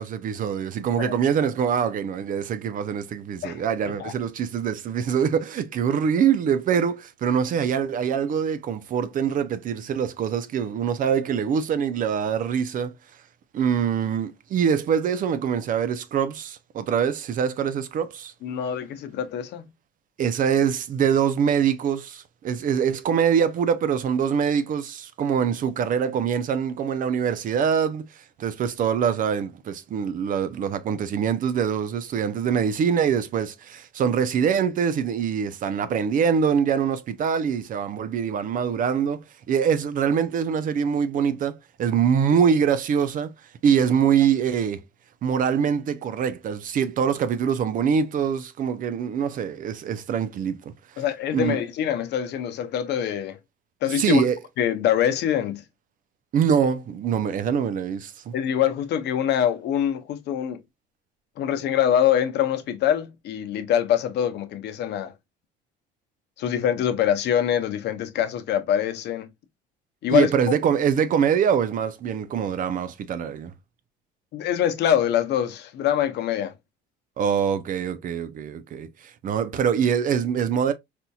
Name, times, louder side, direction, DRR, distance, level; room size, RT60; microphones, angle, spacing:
voice 1, 0.0-12.9 13.5-18.3 20.2-43.3 43.6-44.8 45.2-50.6 51.0-51.1 51.3-51.6 53.9-54.4 56.3-58.3 70.1-73.5 77.2-80.7, right 7 dB, 45° right, 0.5 m, -24 dB
voice 2, 18.4-19.6 51.0-53.4 53.8-54.2 54.6-55.6 58.3-60.6 61.4-65.1 66.4-69.3 70.0-70.3 74.3-76.5, left 10 dB, 60° left, 0.7 m, -24 dB
4.2 x 2.7 x 2.2 m
cardioid pair, 100°, 19 cm